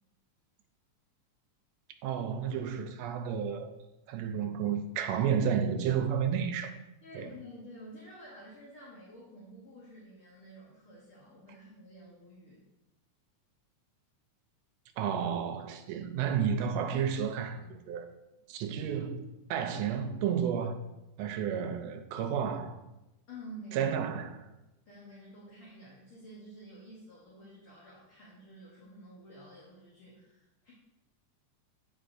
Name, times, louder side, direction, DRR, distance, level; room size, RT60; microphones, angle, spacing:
voice 1, 2.0-3.7 4.1-6.7 7.1-7.3 15.0-18.1 18.5-20.8 21.2-22.8 23.7-24.5, right 7 dB, 80° right, 1.6 m, -31 dB
voice 2, 7.0-12.6 23.3-23.9 24.9-30.7, equal, 60° left, 1.6 m, -50 dB
8.8 x 4.7 x 2.6 m
omnidirectional pair, 3.4 m